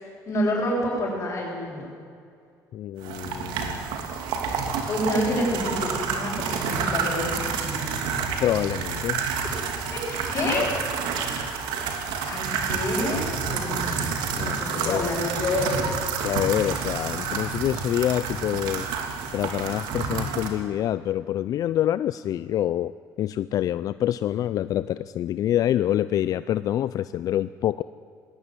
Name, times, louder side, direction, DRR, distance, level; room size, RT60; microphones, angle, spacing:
voice 1, 0.0-1.9 4.9-8.0 9.2-9.3 9.9-11.0 12.3-15.8, left 1 dB, 35° left, -8 dB, 7.3 m, -28 dB
voice 2, 2.7-4.0 8.4-9.2 14.3-15.1 16.2-18.9 19.3-22.9 23.2-27.8, left 11 dB, 55° left, 15 dB, 0.5 m, -26 dB
sound 1, 3.0-20.5, right 6 dB, 85° right, 3.0 m, -29 dB
20.0 x 18.0 x 9.7 m, 2.3 s
cardioid pair, 130°, 7 cm